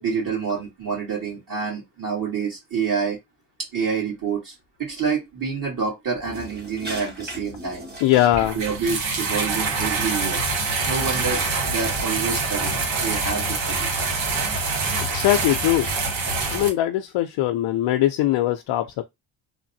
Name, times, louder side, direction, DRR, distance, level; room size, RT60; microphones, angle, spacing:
voice 1, 0.0-3.2 3.7-4.5 4.8-7.8 8.5-10.4 10.8-13.9, right 5 dB, 40° right, 1.7 m, -27 dB
sound 1, 6.2-11.4, right 1 dB, 20° right, 1.3 m, -41 dB
voice 2, 8.0-8.6 15.1-15.9 16.5-19.0, left 14 dB, 70° left, 0.5 m, -21 dB
sound 2, 8.3-16.7, right 3 dB, 85° right, 1.5 m, -25 dB
3.2 x 2.2 x 2.6 m
cardioid pair, 80°, 47 cm